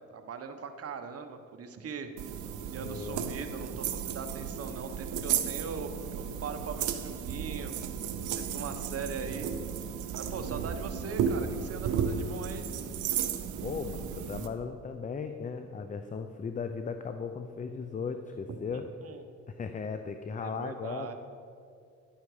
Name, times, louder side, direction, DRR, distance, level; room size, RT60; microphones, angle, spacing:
voice 1, 0.1-2.1 2.7-7.7 8.2-9.5 10.2-12.7 18.7-19.2 20.4-21.1, right 5 dB, 50° right, 7 dB, 1.1 m, -40 dB
sound 1, 2.2-14.5, right 8 dB, 80° right, 0.8 m, -34 dB
voice 2, 2.8-3.2 13.6-18.8 19.5-21.1, left 5 dB, 25° left, 8 dB, 0.5 m, -37 dB
11.5 x 8.6 x 4.9 m, 2.4 s
cardioid pair, 90°, 30 cm